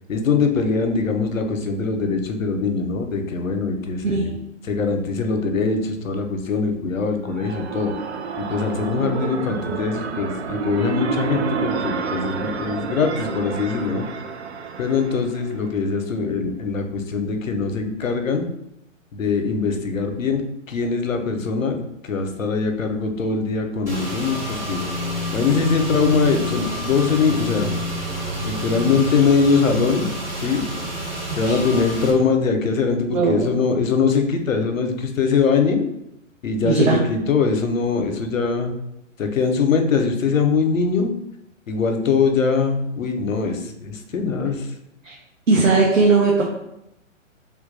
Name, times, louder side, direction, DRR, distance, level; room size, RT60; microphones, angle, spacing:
voice 1, 0.1-4.3 4.6-7.9 8.4-14.0 14.8-18.5 19.1-20.4 20.7-21.8 22.0-24.8 25.3-27.7 28.5-30.1 30.4-30.7 31.3-35.8 36.4-38.7 39.2-41.1 41.7-44.7, left 5 dB, 80° left, 5 dB, 0.8 m, -22 dB
sound 1, 7.0-15.8, right 6 dB, 55° right, 0.5 m, -29 dB
Car / Engine, 23.9-32.1, left 1 dB, 5° right, 0.7 m, -29 dB
voice 2, 33.1-33.4 36.6-37.0 45.0-45.1 45.5-46.4, right 4 dB, 80° right, -3 dB, 0.9 m, -18 dB
3.5 x 2.5 x 3.8 m, 0.81 s
figure-of-eight pair, 125°, 39 cm